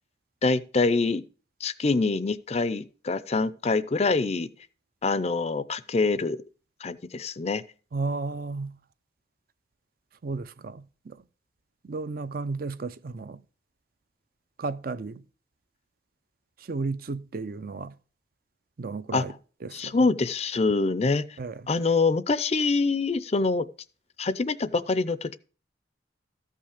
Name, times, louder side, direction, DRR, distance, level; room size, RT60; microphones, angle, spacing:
voice 1, 0.4-1.2 1.6-4.5 5.0-6.4 6.8-7.6 19.1-19.3 19.7-21.3 21.7-23.6 24.2-25.4, left 3 dB, 35° left, 0.5 m, -25 dB
voice 2, 7.9-8.7 10.2-11.2 11.8-13.4 14.6-15.2 16.7-17.9 18.8-19.3 19.6-19.9 21.4-21.5, right 3 dB, 50° right, 0.5 m, -33 dB
13.5 x 5.6 x 5.0 m
head